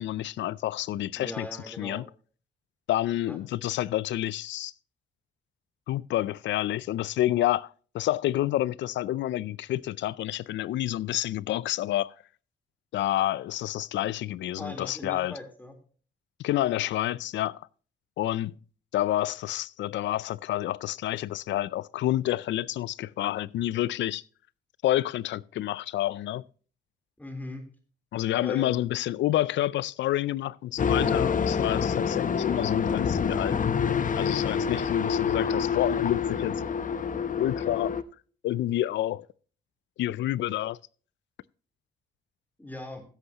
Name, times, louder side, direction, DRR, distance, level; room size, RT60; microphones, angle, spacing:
voice 1, 0.0-2.0 2.9-4.7 5.9-12.1 12.9-15.4 16.4-17.6 18.2-18.6 18.9-24.2 24.8-26.4 28.1-33.7 34.2-36.6 37.4-37.9 38.4-39.3 40.0-40.8, left 14 dB, 80° left, 0.4 m, -29 dB
voice 2, 1.2-2.1 3.3-3.4 14.6-15.7 27.2-27.6 28.4-28.8 42.6-43.0, left 1 dB, 10° left, 3.6 m, -39 dB
sound 1, 30.8-38.0, left 6 dB, 45° left, 0.9 m, -27 dB
15.5 x 8.0 x 2.9 m
cardioid pair, 70°, 19 cm